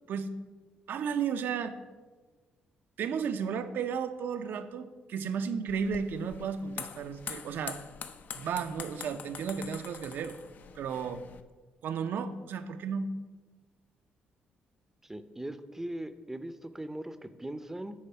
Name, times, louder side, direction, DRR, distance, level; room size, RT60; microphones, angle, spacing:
voice 1, 0.9-1.8 3.0-7.8 8.3-10.4 10.8-11.2 11.8-13.1, right 6 dB, 70° right, 9 dB, 0.6 m, -33 dB
sound 1, 5.7-11.4, left 6 dB, 55° left, 0.5 m, -44 dB
voice 2, 15.1-17.9, right 1 dB, 10° right, 11 dB, 0.6 m, -39 dB
8.6 x 4.0 x 5.7 m, 1.3 s
cardioid pair, 85°, 4 cm